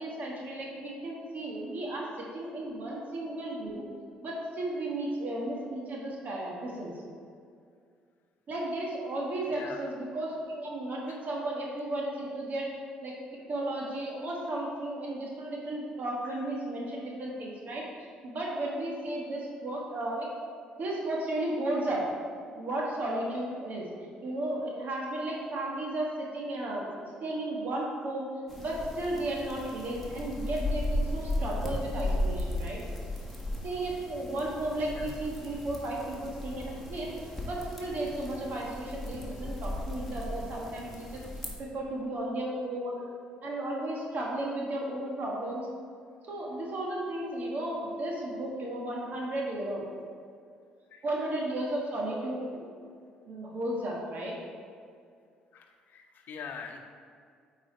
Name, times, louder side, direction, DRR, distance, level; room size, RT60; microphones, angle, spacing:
voice 1, 0.0-3.8 4.2-7.0 8.5-12.7 13.0-13.1 13.5-17.9 18.2-20.3 20.8-22.0 22.6-23.9 24.2-26.9 27.2-28.3 28.6-32.8 33.6-37.1 37.4-41.2 41.6-43.0 43.4-45.7 46.3-49.8 51.0-52.6 53.3-54.3, right 1 dB, 55° right, -2 dB, 1.5 m, -34 dB
voice 2, 9.5-9.9 11.1-11.2 16.2-16.5 34.9-35.2 50.9-51.0 55.5-56.8, left 5 dB, 60° left, 4 dB, 0.8 m, -44 dB
sound 1, 28.5-41.5, left 1 dB, 5° left, 1.6 m, -36 dB
8.8 x 4.0 x 4.4 m, 2.2 s
supercardioid pair, 65°, 3 cm